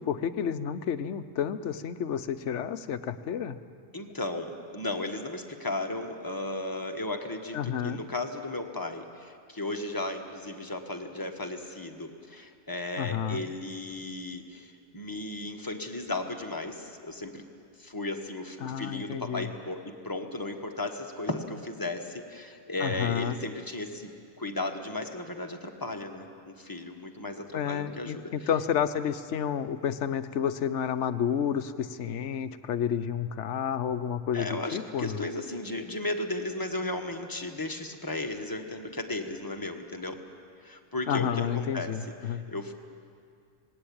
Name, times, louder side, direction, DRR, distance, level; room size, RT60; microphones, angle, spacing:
voice 1, 0.0-3.6 7.5-8.0 13.0-13.4 18.6-19.5 22.8-23.4 27.5-35.2 41.1-42.5, left 8 dB, 75° left, 12 dB, 1.1 m, -30 dB
voice 2, 3.9-17.5 17.8-28.5 34.3-40.2 40.6-41.9 42.2-42.7, left 2 dB, 15° left, 4 dB, 1.4 m, -35 dB
20.0 x 17.5 x 8.8 m, 2.4 s
omnidirectional pair, 1.3 m